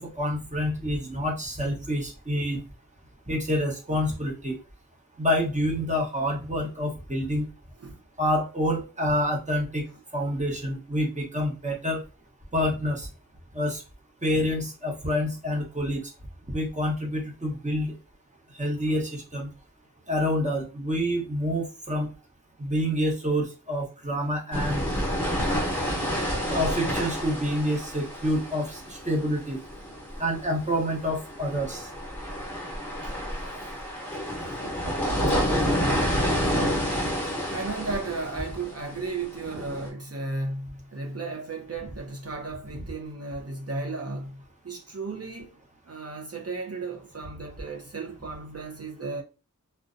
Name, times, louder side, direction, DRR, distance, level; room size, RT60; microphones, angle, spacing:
voice 1, 0.0-2.6 3.3-4.6 5.2-7.5 8.2-9.9 10.1-12.0 12.5-13.1 13.5-13.8 14.2-16.0 16.5-17.9 18.5-19.5 20.1-22.1 22.6-24.9 26.5-29.6 30.2-31.9, equal, 20° right, 0.9 m, -27 dB
sound 1, 24.5-39.9, equal, 5° left, 0.9 m, -29 dB
voice 2, 37.5-45.6 45.9-49.2, right 3 dB, 50° right, 0.6 m, -34 dB
2.6 x 2.2 x 2.5 m
wide cardioid pair, 55°, 32 cm